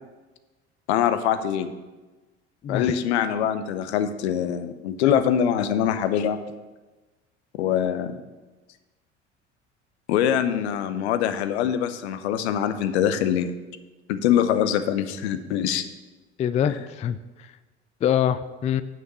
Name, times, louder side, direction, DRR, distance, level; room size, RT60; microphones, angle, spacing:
voice 1, 0.9-1.7 2.7-6.4 7.6-8.2 10.1-13.5 14.1-15.8 16.7-16.8, left 9 dB, 65° left, 11 dB, 0.8 m, -23 dB
voice 2, 16.4-17.2 18.0-18.8, left 9 dB, 20° left, 14 dB, 0.4 m, -24 dB
9.4 x 6.0 x 5.4 m, 1.2 s
figure-of-eight pair, 65°, 35 cm